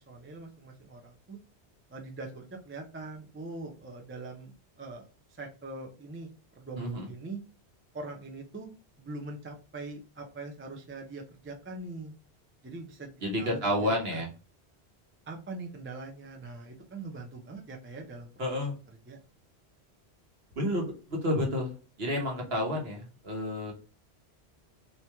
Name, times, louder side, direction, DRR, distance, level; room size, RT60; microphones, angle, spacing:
voice 1, 0.0-1.4 1.9-7.4 7.9-8.7 9.0-12.1 12.6-13.1 13.4-14.2 15.3-18.5 19.1-19.2, right 3 dB, 20° right, 2 dB, 0.4 m, -42 dB
voice 2, 6.8-7.1 13.2-14.3 18.4-18.7 20.6-23.7, left 1 dB, 65° right, 0 dB, 1.3 m, -30 dB
3.0 x 2.8 x 3.3 m, 0.35 s
omnidirectional pair, 1.1 m